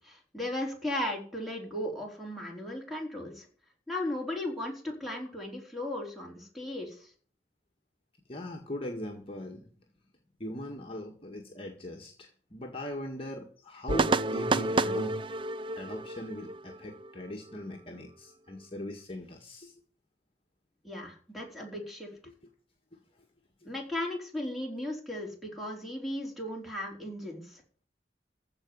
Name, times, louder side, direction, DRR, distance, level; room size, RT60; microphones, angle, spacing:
voice 1, 0.0-3.5 3.9-7.1 20.8-22.1 23.6-27.6, left 1 dB, ahead, 0 dB, 4.5 m, -36 dB
voice 2, 8.3-9.7 10.4-15.2 15.7-19.7 23.6-23.7, left 1 dB, 30° left, 0 dB, 1.8 m, -40 dB
sound 1, 13.9-17.6, right 3 dB, 30° right, 0.5 m, -30 dB
15.0 x 5.2 x 9.7 m, 0.42 s
head